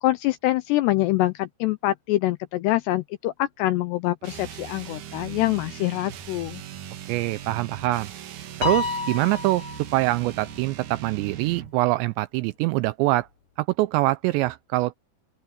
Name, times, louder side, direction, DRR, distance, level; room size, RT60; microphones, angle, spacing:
voice 1, 0.0-6.6, left 16 dB, 85° left, 2.5 m, -25 dB
sound 1, 4.2-11.8, right 10 dB, 65° right, 2.0 m, -39 dB
voice 2, 7.1-8.1 8.6-13.3 13.6-15.0, right 19 dB, 85° right, 2.5 m, -24 dB
Piano, 8.6-10.2, left 4 dB, 70° left, 6.1 m, -29 dB
open air
omnidirectional pair, 5.5 m